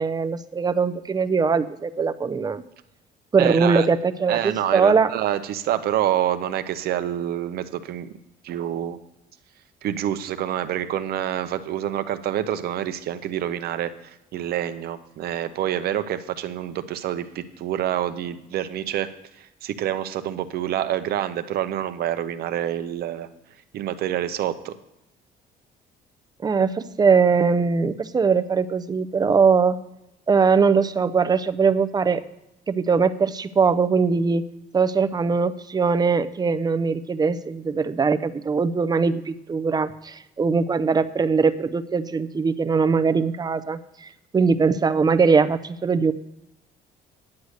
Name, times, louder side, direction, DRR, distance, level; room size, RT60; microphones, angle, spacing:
voice 1, 0.0-2.6 3.3-5.1 26.4-29.8 30.3-32.2 32.7-34.4 34.7-46.1, right 5 dB, 25° right, 12 dB, 0.6 m, -21 dB
voice 2, 3.4-3.9 4.3-8.1 8.4-9.0 9.8-19.1 19.4-23.3 23.7-24.7, right 11 dB, 65° right, 10 dB, 0.8 m, -27 dB
9.6 x 8.1 x 6.4 m, 0.89 s
cardioid pair, 110°, 17 cm